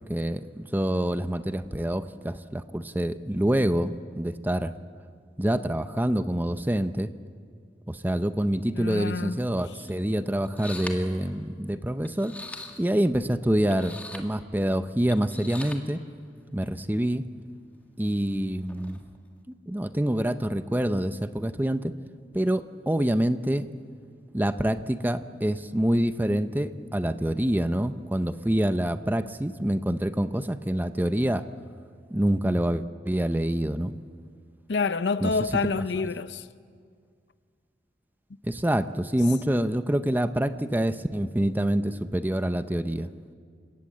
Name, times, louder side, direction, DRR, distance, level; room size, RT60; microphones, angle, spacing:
voice 1, 0.1-4.7 5.4-7.1 7.9-12.3 12.8-16.0 16.5-17.2 18.0-19.0 19.7-21.9 22.3-23.7 24.3-31.4 32.1-33.9 35.2-35.3 38.4-43.1, right 1 dB, 10° right, 0.6 m, -26 dB
voice 2, 8.7-9.4 34.7-36.5 41.2-41.3, left 4 dB, 75° left, 0.7 m, -27 dB
sound 1, 9.9-10.0 10.4-11.1 12.0-13.1 13.7-14.3 15.1-15.8 16.6-16.8 18.6-19.2, left 2 dB, 10° left, 1.7 m, -41 dB
29.5 x 17.5 x 7.5 m
head